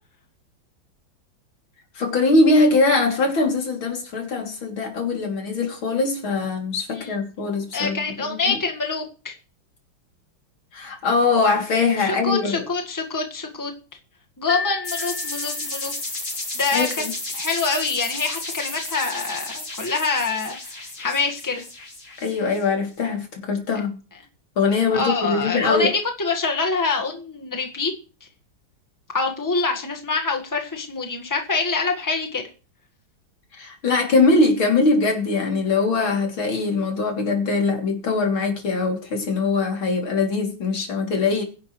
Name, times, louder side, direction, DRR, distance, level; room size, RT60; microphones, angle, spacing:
voice 1, 2.0-8.6 10.7-12.6 16.7-17.1 22.2-24.0 24.6-25.9 33.5-41.4, left 3 dB, 90° left, 3.9 m, -22 dB
voice 2, 7.7-9.3 12.0-13.7 14.4-15.9 16.5-16.9 17.3-21.6 24.9-25.9 26.2-27.9 29.1-32.4, left 4 dB, 10° left, 1.6 m, -25 dB
sound 1, 14.5-16.0, left 5 dB, 20° right, 5.7 m, -33 dB
sound 2, 14.8-22.6, left 2 dB, 60° left, 5.9 m, -32 dB
22.0 x 11.0 x 3.2 m
omnidirectional pair, 2.2 m